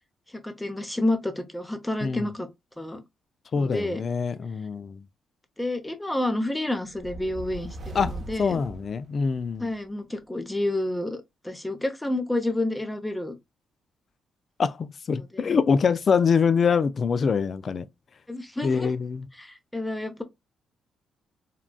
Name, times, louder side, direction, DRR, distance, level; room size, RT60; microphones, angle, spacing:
voice 1, 0.4-2.5 2.8-3.0 3.5-4.0 5.6-8.6 9.6-13.3 15.3-15.5 18.3-18.9 19.4-20.2, left 1 dB, 10° left, 0.7 m, -29 dB
voice 2, 3.5-5.0 7.9-8.1 8.4-9.7 14.6-17.8 18.6-19.3, left 5 dB, 50° left, 0.3 m, -24 dB
sound 1, 6.9-9.6, right 1 dB, 55° right, 0.9 m, -39 dB
3.6 x 2.3 x 2.2 m
cardioid pair, 75°, 0 cm